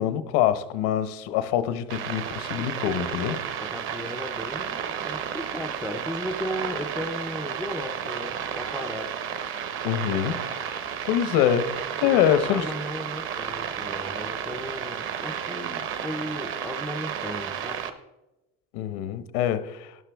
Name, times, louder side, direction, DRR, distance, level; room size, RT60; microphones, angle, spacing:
voice 1, 0.0-3.4 9.8-12.6 18.7-20.0, left 10 dB, 80° left, 0.9 m, -25 dB
sound 1, 1.9-17.9, right 8 dB, 40° right, 0.8 m, -32 dB
voice 2, 3.6-9.2 12.0-17.8, equal, ahead, 0.3 m, -36 dB
12.5 x 10.5 x 3.4 m
cardioid pair, 170°, 32 cm